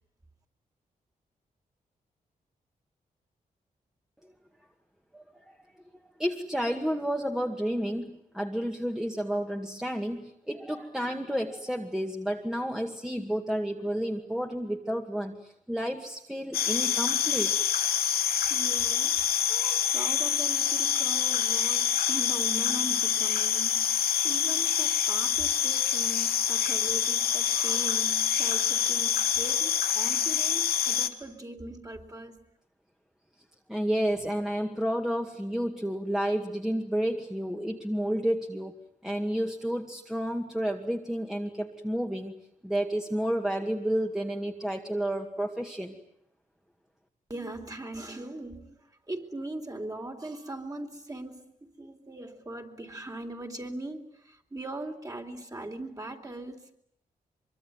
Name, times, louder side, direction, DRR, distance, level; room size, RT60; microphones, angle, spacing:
voice 1, 5.1-5.5 6.2-17.6 33.7-38.8 39.0-42.3 42.6-46.0, equal, 5° right, 2.2 m, -31 dB
sound 1, 16.5-31.1, left 9 dB, 85° left, 1.5 m, -26 dB
voice 2, 18.5-32.4 47.3-56.8, right 2 dB, 25° right, 3.8 m, -40 dB
24.0 x 23.5 x 9.5 m
cardioid pair, 75°, 15 cm